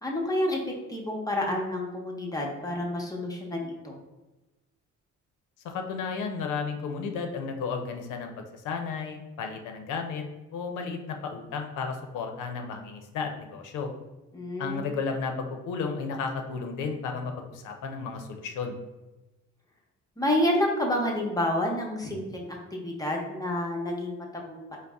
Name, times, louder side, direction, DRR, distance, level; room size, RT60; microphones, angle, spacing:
voice 1, 0.0-0.6 0.9-4.0 14.3-15.0 20.2-24.8, left 1 dB, 10° left, -1 dB, 0.7 m, -29 dB
voice 2, 5.6-10.2 10.5-13.9 14.6-18.8, left 5 dB, 85° left, 4 dB, 0.6 m, -33 dB
4.0 x 2.1 x 3.4 m, 1.1 s
cardioid pair, 90°, 30 cm